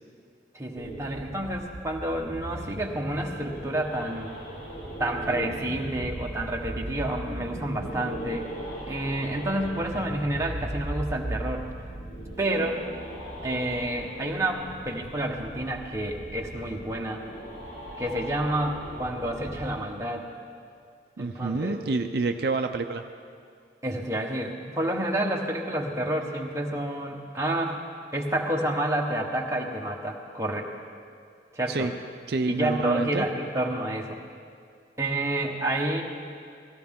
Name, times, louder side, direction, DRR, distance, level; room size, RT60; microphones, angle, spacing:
voice 1, 0.5-4.3 5.0-8.5 8.9-11.7 12.4-12.8 13.4-17.2 18.0-20.3 21.2-21.8 23.8-27.9 28.1-30.7 31.5-31.9 32.5-34.2 35.0-36.0, right 1 dB, 15° right, 0 dB, 1.0 m, -29 dB
sound 1, 0.7-19.7, right 1 dB, 35° left, 2.5 m, -38 dB
voice 2, 21.2-23.0 31.7-31.9 32.3-33.2, right 3 dB, 55° right, 6 dB, 0.5 m, -28 dB
17.5 x 15.0 x 3.6 m, 2.3 s
head